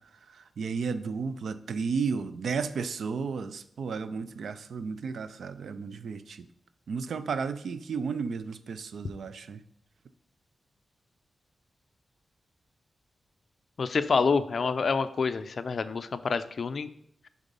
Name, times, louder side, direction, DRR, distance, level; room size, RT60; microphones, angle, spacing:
voice 1, 0.6-6.4 6.9-9.6, right 5 dB, 75° right, 12 dB, 0.4 m, -33 dB
voice 2, 13.8-16.9, left 5 dB, 50° left, 12 dB, 0.4 m, -27 dB
7.8 x 3.6 x 5.3 m, 0.70 s
wide cardioid pair, 145°, 0 cm